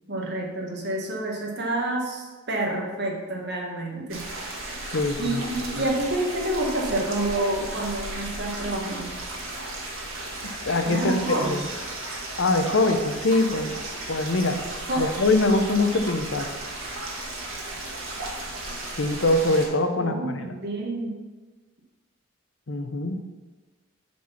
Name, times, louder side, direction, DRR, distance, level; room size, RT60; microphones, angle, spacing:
voice 1, 0.1-4.2 5.2-9.2 10.8-11.7 14.9-15.1 20.0-21.2, right 1 dB, 55° right, 0 dB, 1.6 m, -28 dB
sound 1, 4.1-19.7, right 2 dB, 80° right, 1.7 m, -35 dB
voice 2, 4.8-5.4 5.8-5.9 10.4-11.7 12.4-13.7 14.1-14.6 15.0-16.5 19.0-20.5 22.7-23.2, left 2 dB, 65° left, 7 dB, 0.7 m, -23 dB
7.4 x 4.5 x 5.7 m, 1.3 s
head